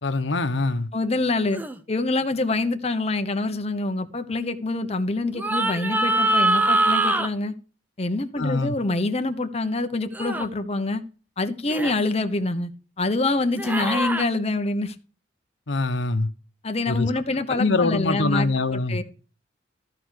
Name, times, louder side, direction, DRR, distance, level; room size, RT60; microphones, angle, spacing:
voice 1, 0.0-0.9 8.4-8.7 15.7-16.3 16.9-17.1 17.5-19.0, left 3 dB, 75° left, 1.0 m, -24 dB
voice 2, 0.9-1.6 1.9-7.5 8.0-11.0 11.4-12.7 13.0-14.9 16.6-18.5 18.7-19.0, left 2 dB, 35° left, 0.9 m, -26 dB
sound 1, 1.5-1.8 5.3-7.3 10.1-10.5 11.7-11.9 13.6-14.3, right 2 dB, 10° right, 0.8 m, -23 dB
14.0 x 4.7 x 6.4 m
head